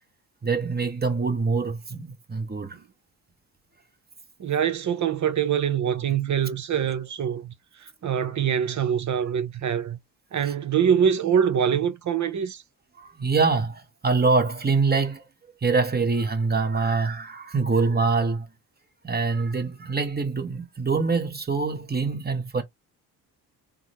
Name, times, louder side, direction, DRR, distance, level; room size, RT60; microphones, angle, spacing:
voice 1, 0.4-2.8 13.0-15.2 15.6-18.5 19.0-22.6, right 4 dB, 25° right, 1.1 m, -24 dB
voice 2, 4.4-7.5 7.8-10.0 10.3-12.6, right 8 dB, 45° right, 0.7 m, -24 dB
3.7 x 2.1 x 3.0 m
supercardioid pair, 65°, 41 cm